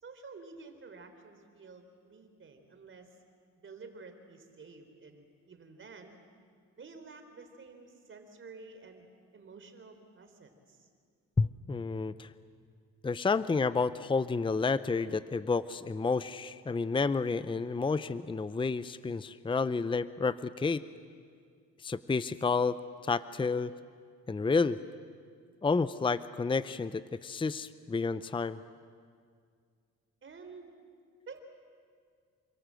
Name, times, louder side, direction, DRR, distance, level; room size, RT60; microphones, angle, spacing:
voice 1, 0.0-3.1 3.6-6.2 6.7-10.9 30.2-30.7 31.3-31.4, right 4 dB, 40° right, 6 dB, 4.0 m, -51 dB
voice 2, 11.4-12.3 13.0-20.8 21.8-22.8 23.0-23.7 24.3-24.8 25.6-28.6, left 4 dB, 15° left, 15 dB, 0.7 m, -30 dB
28.0 x 25.0 x 7.7 m, 2.1 s
cardioid pair, 90°, 30 cm